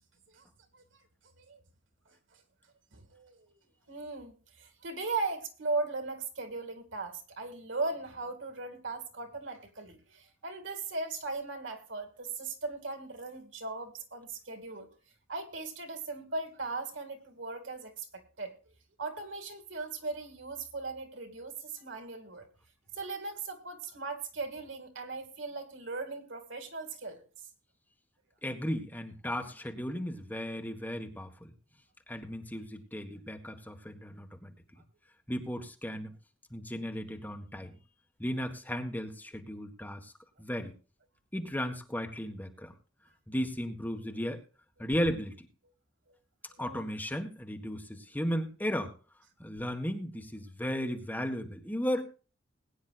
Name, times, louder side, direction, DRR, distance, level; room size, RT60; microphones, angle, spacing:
voice 1, 2.1-2.4 2.9-3.6 3.9-14.9 15.3-18.5 19.0-22.5 22.9-27.5 46.1-46.2 46.5-46.9, right 3 dB, 80° right, 6 dB, 2.5 m, -38 dB
voice 2, 28.4-31.5 32.1-34.5 35.3-36.1 36.5-37.8 38.2-40.1 40.4-40.7 41.3-42.7 43.3-44.4 44.8-45.5 46.6-48.9 49.4-52.0, equal, 10° left, 4 dB, 1.6 m, -35 dB
21.0 x 9.6 x 2.5 m, 0.36 s
head